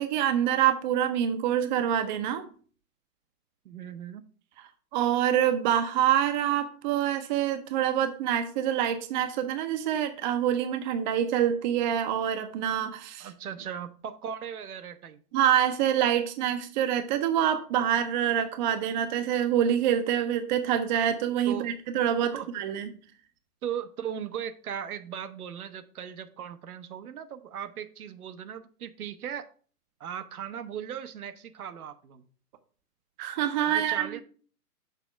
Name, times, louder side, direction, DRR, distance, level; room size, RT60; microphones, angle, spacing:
voice 1, 0.0-2.5 4.9-13.3 15.3-22.9 33.2-34.2, right 10 dB, 30° right, 9 dB, 0.6 m, -26 dB
voice 2, 3.6-4.2 13.2-15.2 21.5-21.7 22.2-22.5 23.6-29.4 30.0-32.2 33.7-34.2, right 9 dB, 70° right, 10 dB, 0.9 m, -38 dB
6.8 x 3.6 x 5.9 m, 0.41 s
hypercardioid pair, 120°, 46 cm